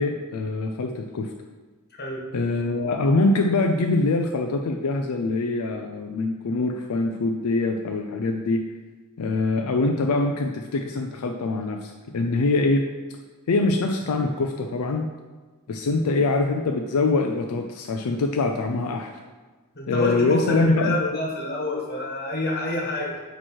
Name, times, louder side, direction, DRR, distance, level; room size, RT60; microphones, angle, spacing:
voice 1, 0.0-1.3 2.3-8.6 9.2-12.9 13.5-15.1 15.7-19.1 19.9-20.9, left 3 dB, 85° left, 3 dB, 0.4 m, -24 dB
voice 2, 19.7-23.2, left 1 dB, 45° left, -2 dB, 1.5 m, -28 dB
8.7 x 3.1 x 4.4 m, 1.3 s
head